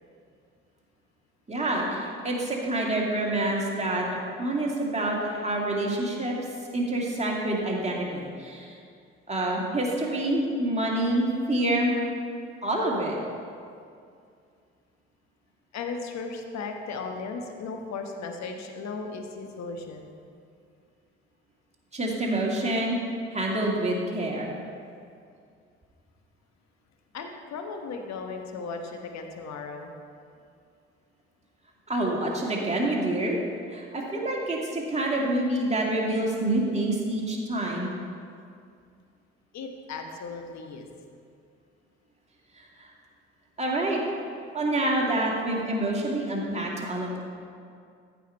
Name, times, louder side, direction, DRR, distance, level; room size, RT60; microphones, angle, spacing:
voice 1, 1.5-6.4 6.7-8.7 9.3-11.9 12.6-13.2 21.9-23.0 23.3-24.5 31.9-33.4 33.7-37.9 42.8-42.9 43.6-44.0 44.5-47.2, right 1 dB, 20° right, -3 dB, 2.2 m, -27 dB
voice 2, 15.7-20.1 27.1-29.9 39.5-40.9, left 4 dB, 50° left, 4 dB, 1.1 m, -36 dB
14.0 x 5.1 x 4.4 m, 2.3 s
figure-of-eight pair, 45°, 35 cm